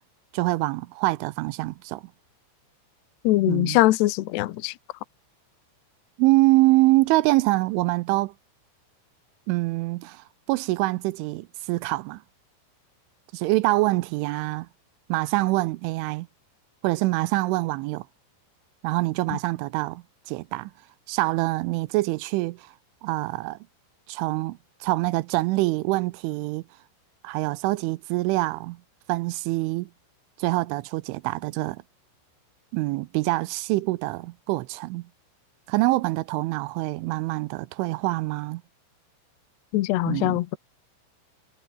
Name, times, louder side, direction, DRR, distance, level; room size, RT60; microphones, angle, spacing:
voice 1, 0.3-2.0 3.5-3.8 6.2-8.3 9.5-12.2 13.3-14.7 15.1-16.3 16.8-18.1 18.8-20.7 21.1-22.7 23.0-23.6 24.1-26.6 27.2-28.8 29.1-29.9 30.4-31.8 32.7-35.1 35.7-38.6 40.1-40.4, right 20 dB, 80° right, 2.9 m, -25 dB
voice 2, 3.2-4.7 19.3-19.4 39.7-40.6, left 17 dB, 75° left, 2.6 m, -22 dB
omnidirectional pair, 5.9 m